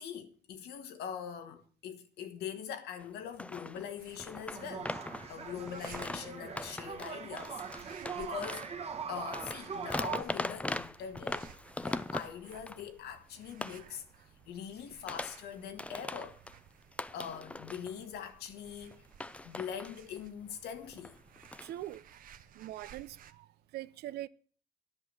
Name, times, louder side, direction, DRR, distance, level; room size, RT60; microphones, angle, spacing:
voice 1, 0.0-4.9 5.3-8.7 9.1-14.0 14.4-16.4 17.1-19.0 19.4-21.2, left 8 dB, 75° left, 1.6 m, -43 dB
sound 1, 3.0-3.1 3.4-8.8 9.2-12.9 13.6-13.8 14.8-15.5 15.8-16.6 16.9-18.1 18.4-18.9 19.2-20.2 20.9-21.9, left 2 dB, 5° left, 0.5 m, -40 dB
sound 2, 4.0-23.3, right 8 dB, 55° right, 0.9 m, -58 dB
sound 3, 4.5-10.2, right 6 dB, 40° right, 1.3 m, -42 dB
voice 2, 21.6-22.0 22.5-23.5 23.7-24.3, right 14 dB, 70° right, 0.6 m, -42 dB
10.5 x 5.8 x 8.8 m
cardioid pair, 110°, 17 cm